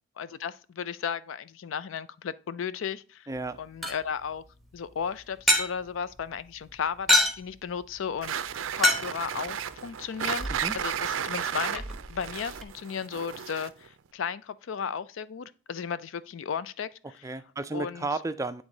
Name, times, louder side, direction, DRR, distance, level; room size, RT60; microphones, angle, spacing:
voice 1, 0.2-3.3 3.6-4.4 4.7-8.4 8.7-10.5 10.7-11.8 12.1-16.9 17.7-18.1, left 7 dB, 75° left, 0.4 m, -34 dB
sound 1, 3.3-12.7, left 1 dB, ahead, 0.9 m, -31 dB
voice 2, 3.3-3.6 10.5-10.8 17.2-18.6, right 3 dB, 15° right, 0.3 m, -33 dB
sound 2, 8.2-13.9, right 8 dB, 75° right, 0.4 m, -33 dB
8.8 x 3.6 x 3.8 m
head